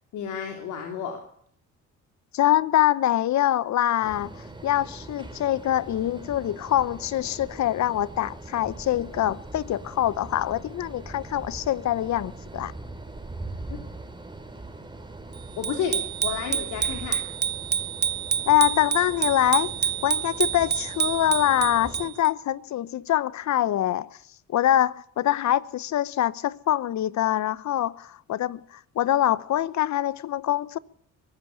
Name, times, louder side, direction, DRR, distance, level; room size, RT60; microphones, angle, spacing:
voice 1, 0.1-1.2 13.7-13.8 15.6-17.2, left 7 dB, 85° left, 3.5 m, -31 dB
voice 2, 2.3-4.4 4.6-12.7 18.5-19.7 20.0-24.2 24.5-30.8, left 12 dB, 65° left, 0.9 m, -24 dB
sound 1, 4.0-22.1, right 2 dB, 15° right, 3.8 m, -41 dB
Bicycle bell, 15.6-22.3, right 8 dB, 35° right, 0.9 m, -28 dB
23.0 x 13.5 x 8.4 m
cardioid pair, 90°, 30 cm